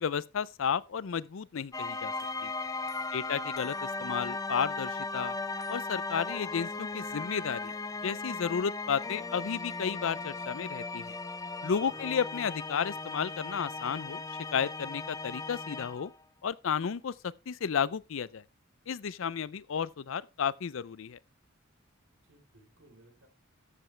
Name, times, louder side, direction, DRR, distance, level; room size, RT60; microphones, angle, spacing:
voice 1, 0.0-2.1 2.4-2.5 3.1-5.4 5.7-7.7 8.0-11.2 11.6-14.2 14.5-16.1 16.4-18.4 18.9-21.2, left 7 dB, 65° left, 0.5 m, -33 dB
sound 1, 1.7-16.2, left 3 dB, 15° left, 0.6 m, -37 dB
voice 2, 2.8-3.4 11.9-12.1 22.1-23.3, right 1 dB, 80° right, 3.7 m, -62 dB
13.5 x 7.9 x 3.2 m
head